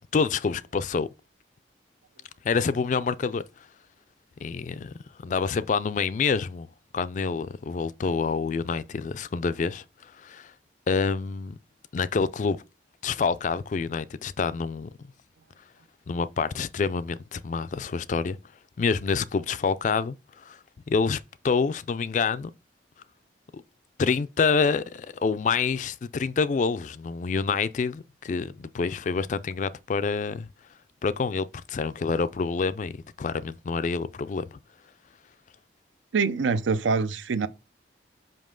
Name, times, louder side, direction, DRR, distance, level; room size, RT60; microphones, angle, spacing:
voice 1, 0.1-1.1 2.4-3.4 4.4-4.9 5.2-6.7 6.9-10.5 10.9-11.6 11.9-12.6 13.0-14.9 16.1-18.4 18.8-20.6 20.9-22.5 23.5-23.6 24.0-30.5 31.0-34.6, left 5 dB, 40° left, 0.3 m, -27 dB
voice 2, 36.1-37.5, right 4 dB, 85° right, 0.5 m, -24 dB
5.4 x 5.3 x 3.7 m
head